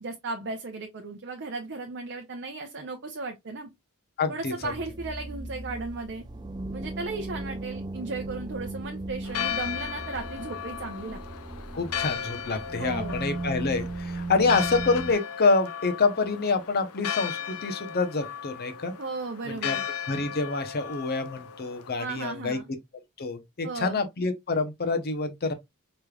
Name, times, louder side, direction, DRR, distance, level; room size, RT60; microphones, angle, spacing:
voice 1, 0.0-3.7 4.3-6.2 6.7-11.2 12.8-13.2 19.0-19.9 22.0-22.7 23.6-24.0, right 3 dB, 55° right, 0.7 m, -35 dB
voice 2, 4.2-4.5 11.7-18.9 19.5-19.8 20.1-22.6 23.2-25.5, left 4 dB, 45° left, 0.8 m, -27 dB
sound 1, 4.6-15.1, right 2 dB, 20° right, 0.4 m, -37 dB
Church bell, 9.2-21.9, left 9 dB, 85° left, 0.5 m, -36 dB
4.9 x 3.2 x 2.3 m
head